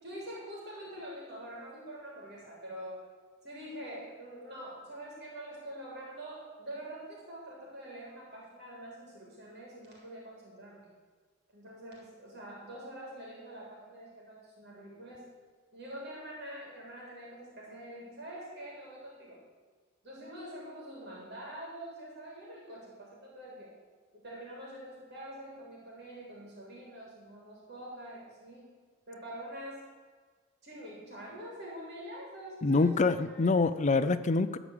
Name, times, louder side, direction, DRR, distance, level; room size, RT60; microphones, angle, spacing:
voice 1, 0.0-3.0 3.4-10.9 11.5-15.3 15.7-19.4 20.0-23.7 24.1-28.7 29.1-29.8 30.6-33.6, right 1 dB, 50° right, -3 dB, 3.4 m, -45 dB
voice 2, 32.6-34.6, left 3 dB, 35° left, 12 dB, 0.5 m, -26 dB
13.0 x 5.0 x 8.6 m, 1.5 s
head